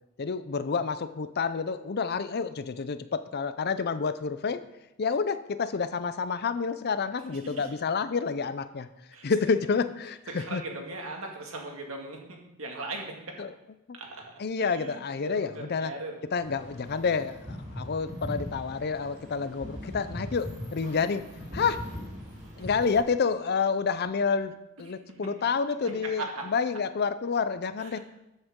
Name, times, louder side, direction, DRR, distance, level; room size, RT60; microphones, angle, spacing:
voice 1, 0.2-4.6 5.0-8.9 9.2-10.6 13.4-13.5 14.4-15.9 16.3-21.2 21.5-21.8 22.6-24.5 24.8-28.0, left 5 dB, 45° left, 12 dB, 0.5 m, -29 dB
voice 2, 7.3-7.7 9.1-9.3 10.3-13.1 13.9-14.3 14.6-16.1 22.6-22.7 26.2-26.4 27.8-28.0, right 2 dB, 65° right, 1 dB, 2.0 m, -39 dB
sound 1, 16.4-23.0, left 1 dB, 35° right, 2.9 m, -40 dB
13.0 x 8.0 x 3.7 m, 0.93 s
head